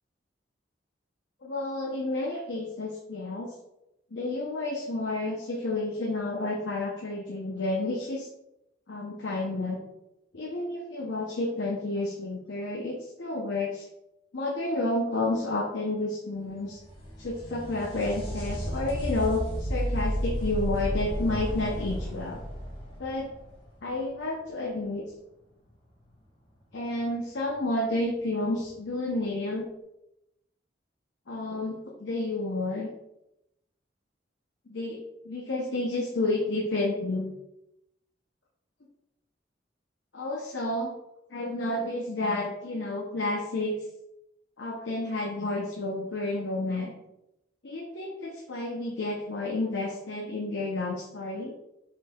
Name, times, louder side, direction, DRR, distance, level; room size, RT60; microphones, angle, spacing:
voice 1, 1.4-3.5 4.1-8.3 8.9-9.8 10.3-13.8 14.3-16.8 17.2-22.4 23.0-23.3 23.8-25.0 26.7-29.6 31.3-32.9 34.7-37.3 40.1-41.0 41.3-43.8 44.6-46.9 47.6-51.5, left 2 dB, 85° left, -1 dB, 0.7 m, -30 dB
sound 1, 16.5-24.1 27.5-27.6 28.6-28.7, equal, 30° left, 1.7 m, -33 dB
6.2 x 3.8 x 2.3 m, 0.88 s
head